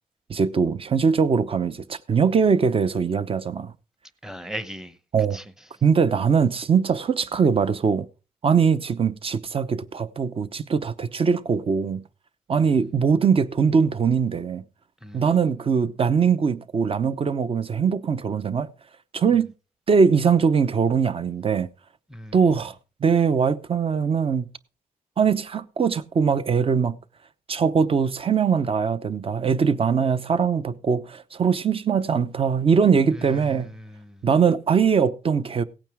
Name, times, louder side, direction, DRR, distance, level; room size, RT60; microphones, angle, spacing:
voice 1, 0.3-3.7 5.1-5.4 5.8-8.1 8.4-12.0 12.5-14.6 15.1-18.7 19.1-19.5 19.9-21.7 22.3-22.7 23.0-24.5 25.2-27.0 27.5-33.7 34.2-35.6, right 6 dB, 40° right, 0.8 m, -21 dB
voice 2, 4.2-4.9 5.3-5.4 15.0-15.2 22.1-22.3 33.4-34.2, equal, 5° right, 0.9 m, -37 dB
17.0 x 9.0 x 3.5 m
wide cardioid pair, 130°, 15 cm